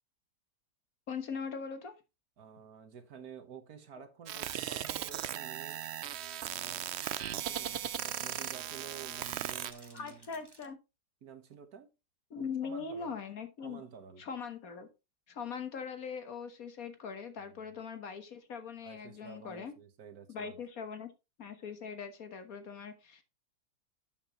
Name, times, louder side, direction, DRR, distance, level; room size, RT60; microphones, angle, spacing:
voice 1, 1.1-2.0 9.9-10.8 12.3-13.8 14.2-14.9 15.3-19.7 20.3-21.1 21.4-23.2, left 6 dB, 60° left, 1.7 m, -41 dB
voice 2, 2.4-5.8 6.4-6.9 7.3-10.4 11.2-11.9 12.4-13.1 13.6-14.2 17.4-17.6 18.8-20.6, right 7 dB, 65° right, 1.6 m, -51 dB
sound 1, 4.3-9.7, right 11 dB, 85° right, 0.5 m, -37 dB
sound 2, 5.7-10.7, right 2 dB, 15° right, 1.4 m, -56 dB
12.0 x 7.4 x 3.0 m
omnidirectional pair, 1.8 m